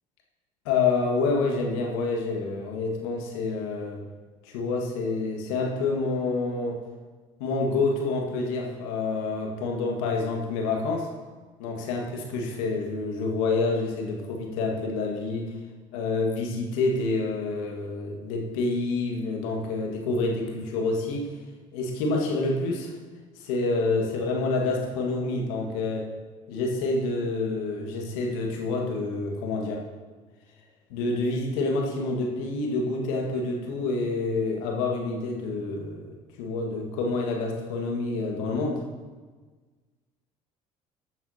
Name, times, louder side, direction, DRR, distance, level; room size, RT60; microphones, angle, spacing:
voice 1, 0.6-4.0 4.4-6.8 7.4-11.1 11.6-15.6 15.9-21.3 21.7-22.9 23.4-26.1 26.5-29.8 30.9-38.8, left 3 dB, 70° left, 1 dB, 1.8 m, -28 dB
14.5 x 9.3 x 2.8 m, 1.4 s
hypercardioid pair, 60°, 17 cm